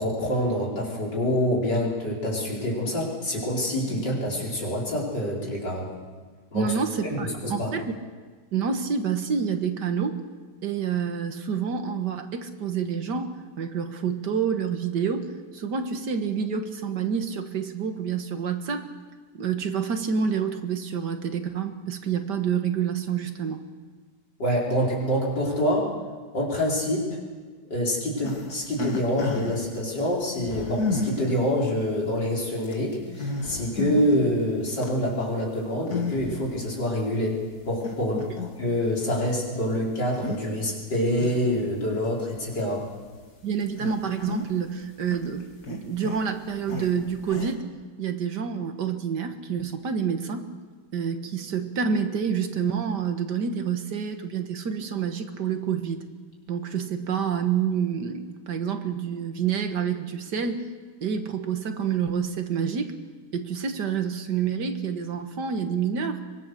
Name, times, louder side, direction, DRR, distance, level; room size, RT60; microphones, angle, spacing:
voice 1, 0.0-5.9 6.5-6.7 7.2-7.7 24.4-25.9 26.3-27.1 27.7-42.8, equal, 85° left, -3 dB, 5.3 m, -26 dB
voice 2, 6.5-7.9 8.5-10.2 10.6-18.9 19.3-23.6 43.4-47.6 48.0-50.5 50.9-56.0 56.5-60.7 61.0-63.0 63.3-66.2, right 7 dB, 75° right, 7 dB, 2.1 m, -28 dB
sound 1, 28.2-29.7 30.4-31.4 32.1-32.2 32.6-32.7 33.1-34.2 34.6-34.9 35.9-36.5 37.0-37.1 37.8-38.6 39.0-39.1 40.1-40.4 40.8-41.7 42.4-42.5 43.1-43.2 43.6-44.8 45.0-47.5, left 3 dB, 65° left, 2.8 m, -32 dB
23.5 x 22.0 x 6.7 m, 1.5 s
omnidirectional pair, 1.8 m